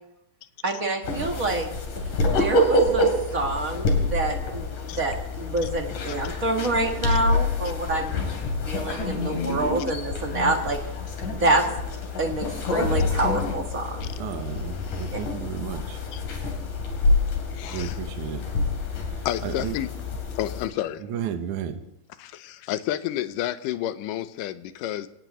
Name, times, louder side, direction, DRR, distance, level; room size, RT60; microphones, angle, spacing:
voice 1, 0.6-2.1 2.4-8.2 8.6-10.8 11.3-11.6 12.2-14.1 15.1-15.2, right 2 dB, 50° right, 2 dB, 1.0 m, -27 dB
sound 1, 1.0-20.7, left 2 dB, 60° left, 4.1 m, -27 dB
voice 2, 14.2-16.0 17.7-18.4 19.4-19.7 21.1-21.8, right 8 dB, 65° right, 6 dB, 2.3 m, -32 dB
voice 3, 17.5-18.0 19.3-19.9 20.4-21.0 22.2-25.1, left 12 dB, 75° left, 12 dB, 2.2 m, -30 dB
25.5 x 18.0 x 3.1 m, 0.85 s
omnidirectional pair, 4.3 m